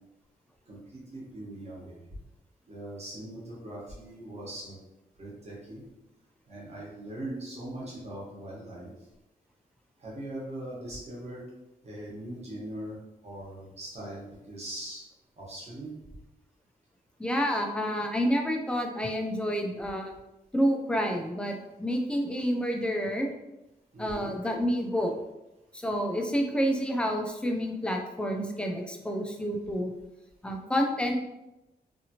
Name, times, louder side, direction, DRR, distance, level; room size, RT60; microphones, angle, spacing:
voice 1, 0.7-2.0 2.7-4.8 5.2-5.8 6.5-8.9 10.0-11.4 11.8-13.0 13.2-15.0 15.4-15.9 23.9-24.3, right 1 dB, 45° right, -6 dB, 1.1 m, -40 dB
voice 2, 17.2-20.1 20.5-23.3 24.0-25.1 25.7-29.9 30.4-31.2, equal, 5° left, 2 dB, 0.4 m, -29 dB
2.8 x 2.5 x 2.8 m, 0.95 s
wide cardioid pair, 140°, 16 cm